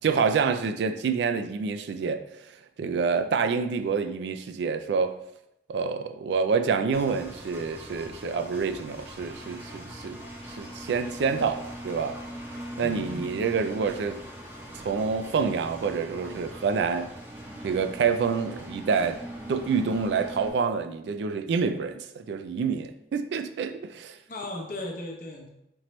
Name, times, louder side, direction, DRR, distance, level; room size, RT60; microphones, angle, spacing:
voice 1, 0.0-2.2 2.8-5.2 5.7-10.2 10.5-12.2 12.8-14.2 14.7-17.1 17.6-19.2 19.5-24.2, right 5 dB, 80° right, 9 dB, 0.3 m, -27 dB
Engine, 6.9-20.5, equal, 10° right, 0.6 m, -41 dB
voice 2, 12.8-13.3 24.3-25.5, left 2 dB, 50° left, 1 dB, 0.7 m, -36 dB
4.3 x 3.0 x 3.0 m, 0.80 s
head